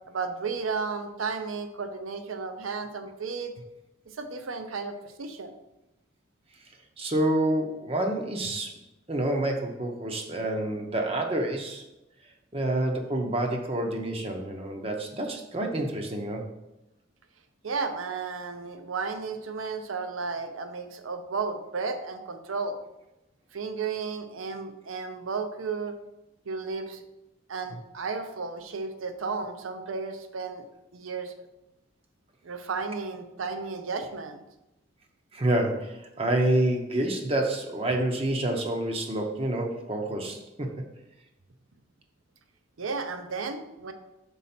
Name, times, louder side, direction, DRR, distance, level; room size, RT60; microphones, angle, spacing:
voice 1, 0.1-3.5 4.2-5.5 17.6-22.8 23.5-25.9 26.5-27.0 27.5-30.6 30.9-31.3 32.4-34.4 42.8-43.9, right 4 dB, 85° right, 7 dB, 0.7 m, -33 dB
voice 2, 7.0-8.8 9.1-11.9 12.5-16.5 35.3-40.7, right 1 dB, 30° right, 2 dB, 0.6 m, -28 dB
5.4 x 4.2 x 4.2 m, 0.94 s
head